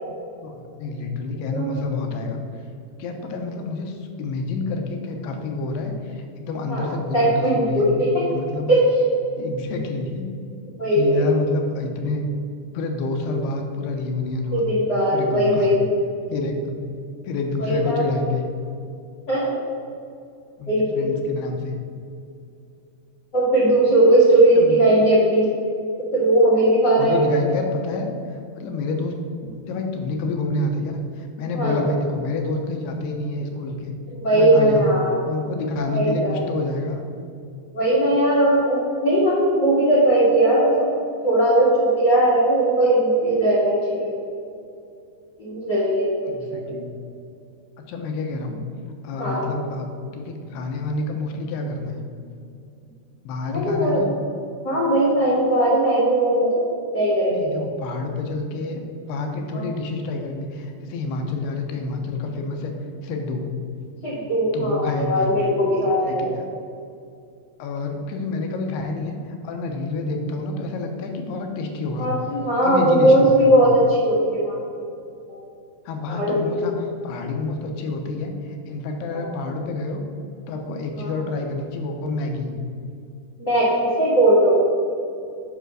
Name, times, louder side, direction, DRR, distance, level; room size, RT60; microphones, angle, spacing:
voice 1, 0.4-2.4 3.0-7.9 8.3-8.7 9.4-10.3 10.9-12.2 12.7-14.6 15.1-15.7 16.3-16.9 17.2-18.5 20.6-21.7 24.6-24.8 27.0-29.2 29.5-33.9 34.3-34.9 35.2-37.1 46.3-46.9 47.8-48.6 49.0-49.9 50.1-52.0 53.2-54.1 57.3-58.8 59.1-62.7 63.0-63.6 64.5-65.4 65.8-66.4 67.6-72.1 72.6-73.7 75.9-80.0 80.5-82.5, left 3 dB, 80° left, 3 dB, 2.8 m, -28 dB
voice 2, 7.1-8.2 8.7-8.8 10.8-11.3 14.5-15.8 17.6-18.0 19.3-19.5 20.7-21.1 23.3-25.5 26.1-27.3 31.5-31.9 34.1-35.2 35.8-36.4 37.7-40.9 41.2-44.2 45.4-46.7 49.2-49.5 53.5-54.0 54.6-56.6 56.9-57.5 59.5-59.7 64.0-66.3 72.0-74.8 75.3-75.4 76.1-76.8 79.1-79.3 81.0-81.1 83.4-84.5, right 1 dB, 60° left, -10 dB, 1.1 m, -19 dB
8.0 x 5.7 x 6.2 m, 2.5 s
omnidirectional pair, 4.9 m